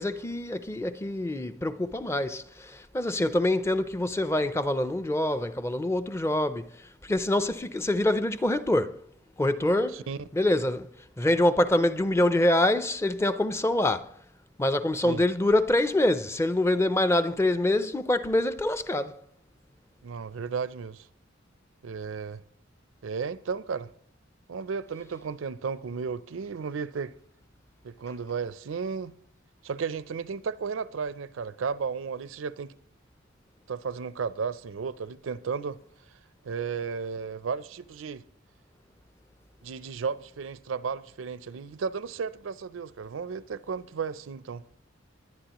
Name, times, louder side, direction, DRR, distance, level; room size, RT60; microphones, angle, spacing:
voice 1, 0.0-9.0 9.4-10.1 10.3-14.1 14.6-19.2, left 1 dB, 15° left, 0.5 m, -25 dB
voice 2, 20.0-21.1 21.8-22.4 23.0-23.9 24.5-27.1 27.8-29.1 29.6-32.7 33.7-35.8 36.4-38.2 39.6-44.6, right 5 dB, 80° right, 0.5 m, -34 dB
21.5 x 9.6 x 3.0 m
head